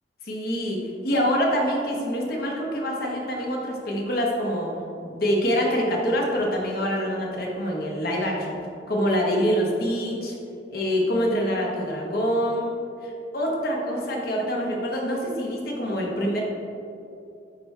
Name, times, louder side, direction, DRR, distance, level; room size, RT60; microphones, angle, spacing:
voice 1, 0.2-4.7 5.0-8.5 8.9-10.3 10.7-12.7 13.0-16.4, equal, 60° left, -1 dB, 1.2 m, -25 dB
9.6 x 4.4 x 3.3 m, 2.7 s
head